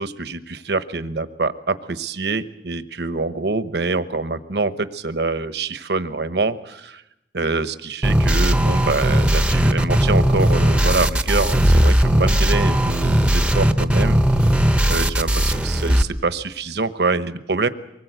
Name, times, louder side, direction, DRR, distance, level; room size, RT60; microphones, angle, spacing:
voice 1, 0.0-7.0 7.3-14.2 14.9-17.7, right 3 dB, 65° right, 12 dB, 1.1 m, -25 dB
sound 1, 8.0-16.0, equal, 5° right, 0.9 m, -17 dB
24.5 x 20.0 x 8.1 m, 0.87 s
head